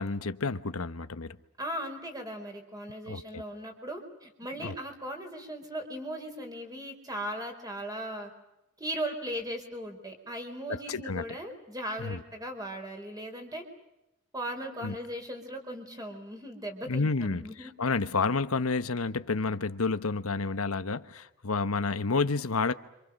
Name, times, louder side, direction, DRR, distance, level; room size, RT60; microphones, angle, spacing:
voice 1, 0.0-1.4 3.1-3.4 4.6-4.7 10.9-11.2 12.0-12.2 14.8-15.0 16.9-22.7, left 4 dB, 85° left, 1.1 m, -30 dB
voice 2, 1.6-8.3 8.8-13.6 14.3-17.7, right 1 dB, 20° right, 4.7 m, -38 dB
29.5 x 26.5 x 6.5 m
head